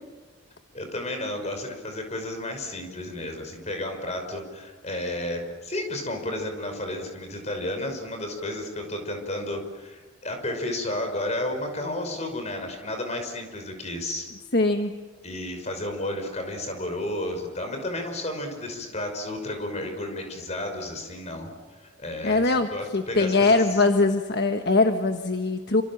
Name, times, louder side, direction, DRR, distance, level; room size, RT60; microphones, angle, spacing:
voice 1, 0.7-14.3 15.2-21.5 22.0-23.8, left 1 dB, 35° left, 5 dB, 5.8 m, -32 dB
voice 2, 14.5-14.9 22.2-25.8, left 3 dB, 55° left, 6 dB, 1.4 m, -22 dB
28.5 x 26.5 x 7.4 m, 1.4 s
head